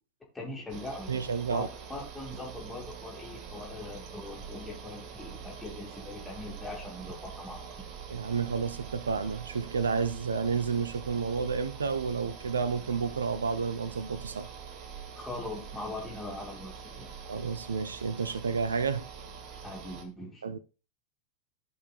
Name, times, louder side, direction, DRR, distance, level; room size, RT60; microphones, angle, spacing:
voice 1, 0.3-1.1 1.5-7.9 15.1-17.1 19.6-20.4, left 2 dB, 10° left, 2.6 m, -41 dB
sound 1, 0.7-20.0, right 6 dB, 40° right, 1.4 m, -45 dB
voice 2, 1.1-1.7 8.1-14.5 17.3-19.1 20.4-20.6, right 5 dB, 70° right, 0.8 m, -30 dB
14.5 x 5.1 x 2.5 m
figure-of-eight pair, 90°, 0 cm